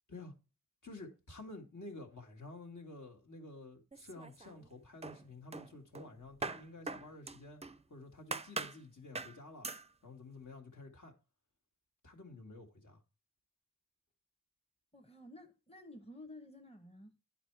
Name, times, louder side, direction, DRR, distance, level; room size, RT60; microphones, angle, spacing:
voice 1, 0.8-7.6 7.9-9.7 10.0-11.1 12.0-13.0, left 2 dB, 65° left, 1.8 m, -51 dB
sound 1, 3.9-4.7 5.0-7.8 8.3-8.8 9.1-9.4 9.6-9.9, right 3 dB, 20° right, 0.5 m, -42 dB
voice 2, 14.9-17.1, left 1 dB, 20° left, 1.1 m, -53 dB
10.0 x 4.3 x 4.6 m
wide cardioid pair, 70°, 33 cm